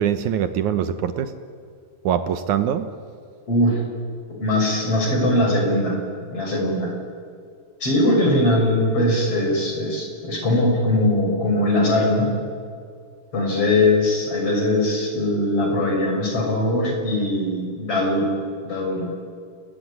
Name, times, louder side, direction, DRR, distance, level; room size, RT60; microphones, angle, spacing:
voice 1, 0.0-1.3 2.0-2.9, right 9 dB, 70° right, 10 dB, 1.9 m, -23 dB
voice 2, 3.5-3.8 4.4-6.0 6.3-7.0 7.8-12.3 13.3-18.4 18.6-19.1, left 1 dB, 35° left, 1 dB, 6.8 m, -21 dB
29.5 x 20.0 x 9.6 m, 2.3 s
omnidirectional pair, 4.5 m